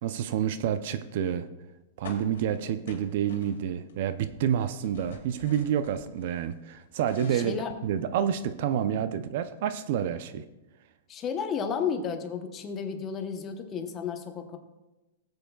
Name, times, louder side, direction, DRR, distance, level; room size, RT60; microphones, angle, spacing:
voice 1, 0.0-1.5 2.0-10.4, right 9 dB, 50° right, 12 dB, 0.5 m, -29 dB
sound 1, 2.0-3.9 4.2-6.3 6.7-8.3, left 5 dB, 85° left, 2.0 m, -47 dB
voice 2, 7.3-7.8 11.1-14.6, left 6 dB, 20° left, 6 dB, 0.8 m, -32 dB
19.0 x 7.8 x 2.3 m, 1.0 s
supercardioid pair, 165°, 0 cm